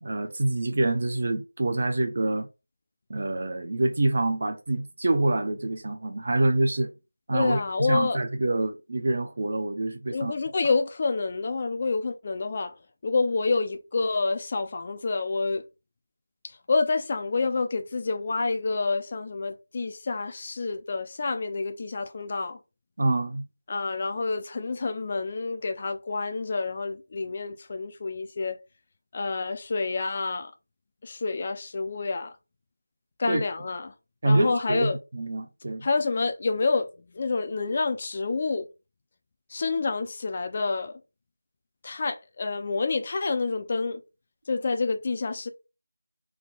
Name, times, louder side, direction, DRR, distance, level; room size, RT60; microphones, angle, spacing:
voice 1, 0.0-2.5 3.1-6.9 7.3-10.3 23.0-23.5 33.3-33.4 34.2-35.9, right 2 dB, 40° right, 0.6 m, -26 dB
voice 2, 7.3-8.2 10.1-12.8 13.0-15.6 16.4-22.6 23.7-28.6 29.1-30.5 31.0-32.3 33.2-33.9 34.2-35.0 35.8-38.7 39.5-40.9 41.8-44.0 44.5-45.5, left 3 dB, 25° left, 0.4 m, -28 dB
3.5 x 2.2 x 3.9 m
figure-of-eight pair, 170°, 0 cm